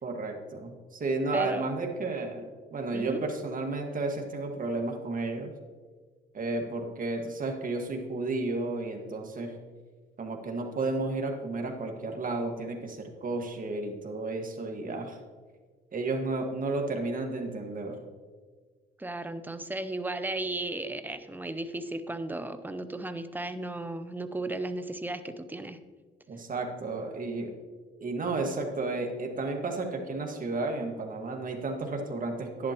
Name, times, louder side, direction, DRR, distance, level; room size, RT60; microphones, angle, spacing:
voice 1, 0.0-5.5 6.3-9.6 10.2-15.2 15.9-18.0 26.3-27.5 28.0-32.7, right 3 dB, 45° right, 3 dB, 1.8 m, -32 dB
voice 2, 1.3-1.7 2.0-2.1 2.9-3.2 19.0-25.8, right 2 dB, 10° right, 10 dB, 0.7 m, -35 dB
11.0 x 11.0 x 3.0 m, 1.5 s
cardioid pair, 90°, 20 cm